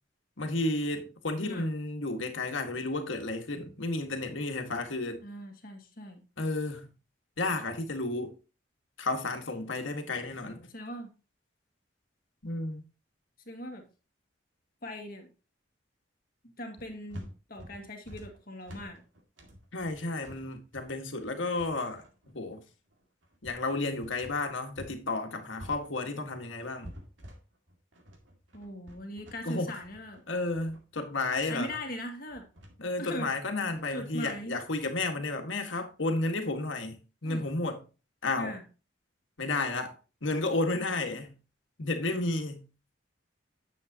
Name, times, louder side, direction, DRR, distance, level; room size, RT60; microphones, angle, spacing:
voice 1, 0.4-5.2 6.4-6.9 7.4-8.3 9.0-10.7 12.4-12.8 19.7-22.0 22.3-22.6 23.4-27.0 29.4-29.7 30.3-31.7 32.8-37.8 38.2-38.6 39.4-41.4 41.8-42.7, left 2 dB, 80° left, 1.7 m, -32 dB
voice 2, 5.2-6.2 10.4-11.1 13.5-13.8 14.8-15.3 16.6-19.0 28.5-30.2 31.5-32.4 33.0-33.3 33.9-34.6 37.2-37.5 38.4-38.6, equal, 50° left, 2.0 m, -40 dB
sound 1, 16.7-25.0 25.3-34.0, equal, 80° right, 2.2 m, -49 dB
9.6 x 7.5 x 2.9 m
head